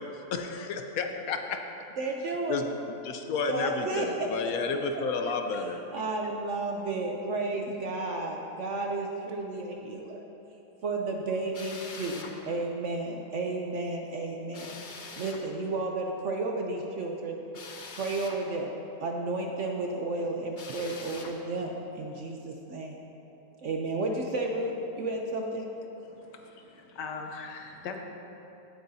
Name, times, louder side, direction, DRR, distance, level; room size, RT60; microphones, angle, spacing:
voice 1, 0.0-1.6 2.5-2.7 3.0-5.8, left 4 dB, 65° left, 5 dB, 1.0 m, -31 dB
voice 2, 2.0-2.6 3.5-4.5 5.6-10.2 10.8-14.8 15.2-17.4 18.0-18.7 19.0-23.0 23.6-25.7, right 2 dB, 60° right, 1 dB, 0.8 m, -32 dB
Drill, 11.5-12.4 14.5-15.4 17.5-18.4 20.5-21.4, left 4 dB, 50° left, 0.6 m, -43 dB
voice 3, 26.0-28.0, left 5 dB, 90° left, 3 dB, 1.6 m, -41 dB
16.0 x 8.5 x 2.7 m, 3.0 s
omnidirectional pair, 1.8 m